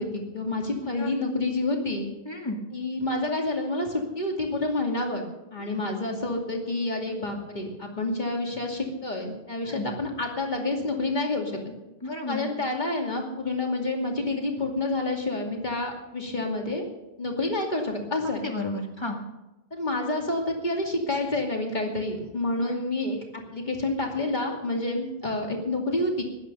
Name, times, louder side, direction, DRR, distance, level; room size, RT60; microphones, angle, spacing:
voice 1, 0.0-2.1 2.7-5.2 5.5-11.6 12.3-16.9 17.2-18.4 19.7-23.2 23.5-26.2, left 2 dB, 40° left, 1 dB, 2.7 m, -28 dB
voice 2, 2.3-2.6 5.7-5.8 9.6-9.9 12.0-12.5 18.4-19.2 22.6-22.7, left 2 dB, 20° left, 2 dB, 2.1 m, -33 dB
16.5 x 11.5 x 5.6 m, 1.0 s
omnidirectional pair, 1.2 m